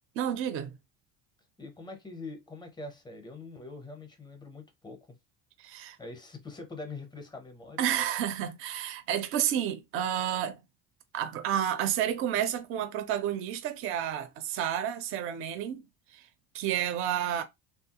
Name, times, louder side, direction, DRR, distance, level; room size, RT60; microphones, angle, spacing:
voice 1, 0.2-0.8 5.6-6.0 7.8-10.6 11.1-15.8 16.1-16.3 16.5-17.4, right 10 dB, 35° right, 0.4 m, -30 dB
voice 2, 1.6-5.0 6.0-7.9, left 3 dB, 10° left, 0.5 m, -43 dB
3.0 x 2.3 x 2.8 m
cardioid pair, 150°, 38 cm